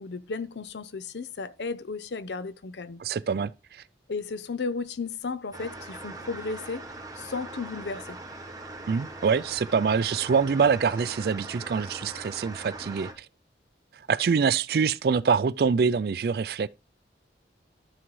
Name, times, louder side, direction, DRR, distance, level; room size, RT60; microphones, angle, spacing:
voice 1, 0.0-3.0 4.1-6.9 7.2-8.2, left 4 dB, 75° left, 0.6 m, -34 dB
voice 2, 3.0-3.8 8.9-13.3 14.1-16.7, right 5 dB, 55° right, 0.3 m, -25 dB
sound 1, 5.5-13.1, right 2 dB, 20° right, 1.2 m, -41 dB
12.0 x 6.0 x 3.2 m
head